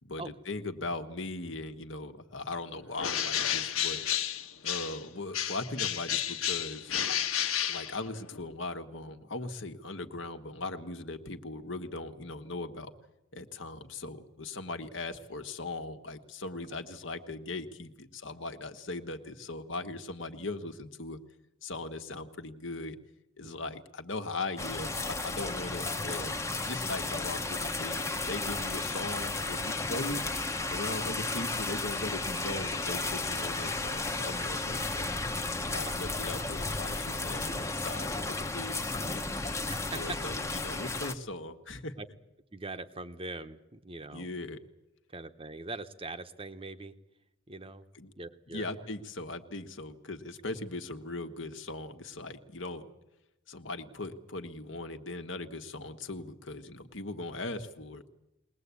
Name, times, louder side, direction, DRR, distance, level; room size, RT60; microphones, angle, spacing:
voice 1, 0.0-4.0 4.6-6.9 7.7-12.9 13.3-21.2 21.6-23.0 23.4-26.4 26.6-30.2 30.7-35.1 35.5-39.2 39.9-41.9 44.1-44.6 47.9-48.1 48.5-52.9 53.5-58.0, left 2 dB, 65° left, 7 dB, 1.5 m, -39 dB
Bird, 3.0-5.1 5.3-8.4, left 10 dB, 85° left, 1.5 m, -31 dB
sound 1, 24.6-41.1, left 3 dB, 15° left, 0.9 m, -33 dB
voice 2, 39.7-40.2 42.0-42.1 42.5-44.3 45.1-46.9 47.5-47.8 48.2-48.7, right 3 dB, 25° right, 9 dB, 1.0 m, -41 dB
22.0 x 19.5 x 8.4 m, 0.93 s
head